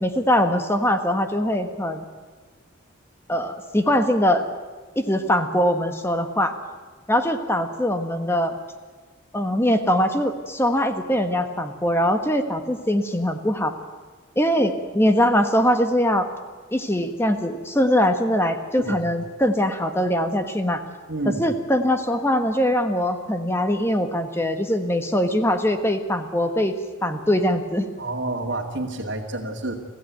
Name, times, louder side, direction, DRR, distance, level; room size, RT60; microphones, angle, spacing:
voice 1, 0.0-2.0 3.3-4.4 4.9-6.5 7.1-8.5 9.3-13.7 14.4-16.3 16.7-20.8 21.2-26.7 27.0-27.9, equal, 10° left, 6 dB, 1.4 m, -22 dB
voice 2, 21.1-21.5 28.0-29.7, right 2 dB, 65° right, -3 dB, 2.4 m, -29 dB
26.0 x 16.0 x 9.4 m, 1.4 s
head